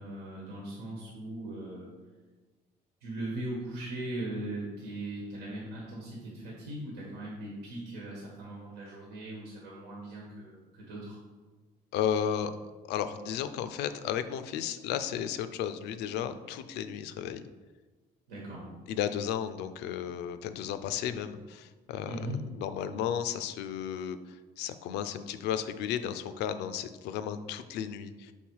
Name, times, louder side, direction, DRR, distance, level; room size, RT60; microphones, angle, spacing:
voice 1, 0.0-1.9 3.0-11.2 18.3-18.7 22.1-22.4, right 1 dB, 85° right, -3 dB, 1.4 m, -39 dB
voice 2, 11.9-12.5 12.9-17.4 18.9-22.2 22.5-28.3, left 9 dB, 85° left, 11 dB, 0.5 m, -34 dB
5.6 x 4.1 x 4.6 m, 1.3 s
cardioid pair, 110°, 17 cm